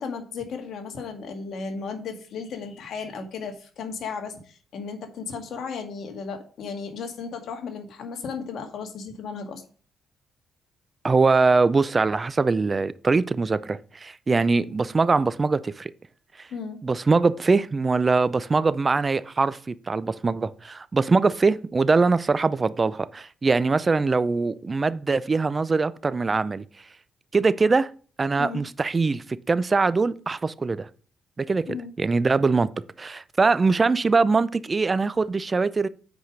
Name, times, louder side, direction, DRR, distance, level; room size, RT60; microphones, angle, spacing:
voice 1, 0.0-9.6 16.5-16.8 28.4-28.6 31.7-31.9, left 5 dB, 65° left, 2.0 m, -35 dB
voice 2, 11.0-15.9 16.8-26.6 27.3-27.9 28.2-30.9 31.4-32.7 33.0-35.9, right 4 dB, 30° right, 0.5 m, -22 dB
8.2 x 5.0 x 5.2 m
cardioid pair, 90°, 0 cm